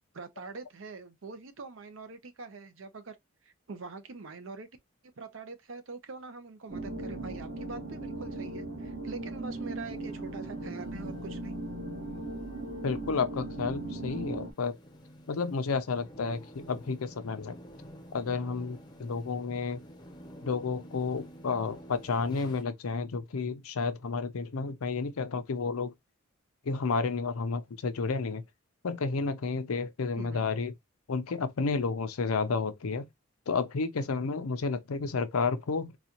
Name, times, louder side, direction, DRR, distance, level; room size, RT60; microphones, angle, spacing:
voice 1, 0.1-3.2 3.4-4.7 5.2-11.6 30.2-30.4, right 3 dB, 65° right, 0.6 m, -44 dB
sound 1, 6.7-14.5, right 2 dB, 50° right, 1.2 m, -38 dB
sound 2, 9.5-22.6, equal, 20° left, 0.6 m, -51 dB
voice 2, 12.8-14.8 15.3-17.6 18.1-19.8 20.5-25.9 26.7-28.4 28.8-30.7 31.1-33.1 33.5-35.9, left 4 dB, 85° left, 0.5 m, -31 dB
4.0 x 2.3 x 2.8 m
head